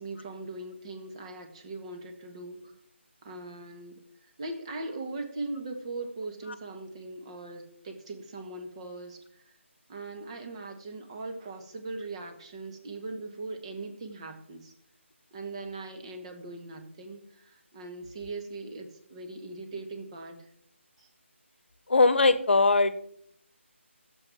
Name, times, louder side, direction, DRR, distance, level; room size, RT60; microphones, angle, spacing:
voice 1, 0.0-2.7 3.2-9.6 9.9-14.7 15.3-20.5 21.0-21.1, right 2 dB, 25° right, 4 dB, 1.8 m, -40 dB
voice 2, 21.9-23.0, left 3 dB, 55° left, 14 dB, 1.1 m, -20 dB
11.5 x 7.7 x 6.1 m, 0.69 s
figure-of-eight pair, 155°, 7 cm